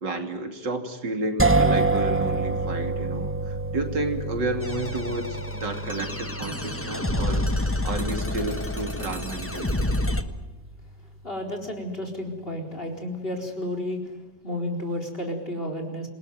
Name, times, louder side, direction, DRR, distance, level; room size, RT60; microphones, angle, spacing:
voice 1, 0.0-9.7, right 2 dB, 80° right, 5 dB, 3.4 m, -31 dB
sound 1, 1.4-11.2, right 3 dB, 10° right, 0.6 m, -28 dB
sound 2, 4.6-10.2, left 1 dB, 10° left, 1.1 m, -29 dB
voice 2, 11.2-14.0 14.4-16.1, left 1 dB, 30° left, 2 dB, 4.4 m, -31 dB
28.0 x 19.0 x 9.4 m, 1.2 s
omnidirectional pair, 1.9 m